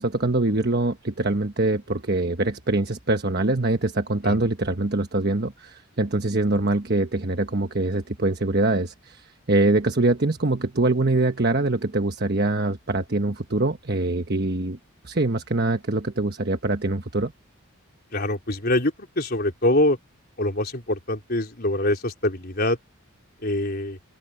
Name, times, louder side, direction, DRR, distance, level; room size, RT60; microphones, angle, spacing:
voice 1, 0.0-14.8 15.0-17.3, right 2 dB, 50° right, 1.2 m, -24 dB
voice 2, 18.1-20.0 20.4-22.8 23.4-24.0, left 1 dB, 45° left, 4.1 m, -24 dB
open air
head